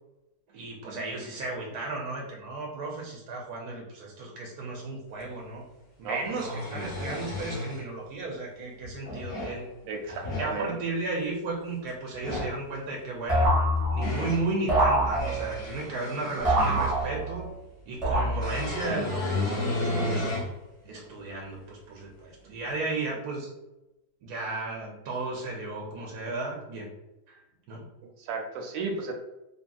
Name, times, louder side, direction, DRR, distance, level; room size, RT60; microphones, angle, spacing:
voice 1, 0.5-5.6 6.0-9.7 10.3-13.5 13.9-17.5 17.9-20.3 20.8-23.5 24.2-26.9 27.3-27.4 27.7-27.9, right 2 dB, 70° right, -2 dB, 1.0 m, -34 dB
sound 1, 5.2-5.3 6.1-7.8 8.8-9.6 10.0-10.5 12.1-12.6 13.5-14.5 15.0-17.2 18.4-20.5 21.1-21.2 22.7-22.8, left 2 dB, 35° left, 0.8 m, -33 dB
voice 2, 9.9-10.8 28.2-29.1, right 4 dB, 90° right, 3 dB, 1.3 m, -33 dB
sound 2, 13.3-14.2 14.7-15.6 16.5-17.5 18.0-18.7, right 1 dB, 25° right, 0.9 m, -25 dB
2.8 x 2.6 x 2.3 m, 0.98 s
omnidirectional pair, 1.9 m